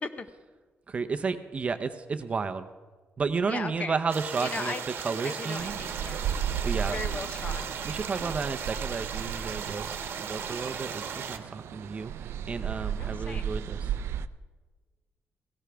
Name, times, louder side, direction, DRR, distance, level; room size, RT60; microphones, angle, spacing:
voice 1, 0.9-2.7 3.2-5.8 6.6-7.0 7.8-13.9, right 5 dB, 30° right, 9 dB, 0.6 m, -32 dB
voice 2, 3.4-4.0 4.4-4.8 5.2-6.2 6.9-7.7 13.0-13.5, left 4 dB, 35° left, 11 dB, 0.6 m, -37 dB
sound 1, 4.1-11.4, right 7 dB, 65° right, 1.0 m, -37 dB
sound 2, 5.6-14.3, right 8 dB, 85° right, 0.4 m, -35 dB
17.0 x 16.5 x 3.4 m, 1.3 s
wide cardioid pair, 170°, 4 cm